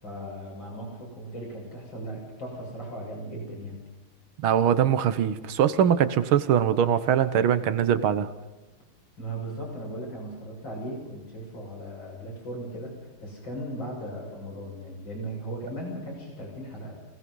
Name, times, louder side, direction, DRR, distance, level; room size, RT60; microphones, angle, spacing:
voice 1, 0.0-3.8 9.2-17.0, right 1 dB, 60° left, -1 dB, 7.3 m, -37 dB
voice 2, 4.4-8.3, right 9 dB, 75° right, 12 dB, 1.9 m, -22 dB
27.0 x 18.0 x 5.5 m, 1.1 s
omnidirectional pair, 2.4 m